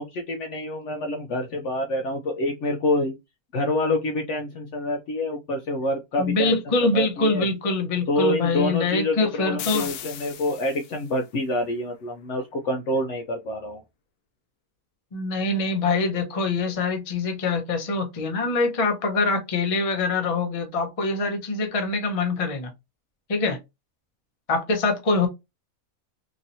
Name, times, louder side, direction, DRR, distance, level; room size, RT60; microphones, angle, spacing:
voice 1, 0.0-3.2 3.5-6.5 6.9-7.5 8.1-13.8, left 1 dB, 65° left, 0.8 m, -27 dB
voice 2, 6.2-9.9 15.1-22.7 23.3-23.6 24.5-25.3, left 3 dB, 35° left, 0.6 m, -24 dB
sound 1, 9.6-11.1, left 9 dB, 85° left, 1.1 m, -36 dB
3.0 x 2.8 x 2.5 m
omnidirectional pair, 1.6 m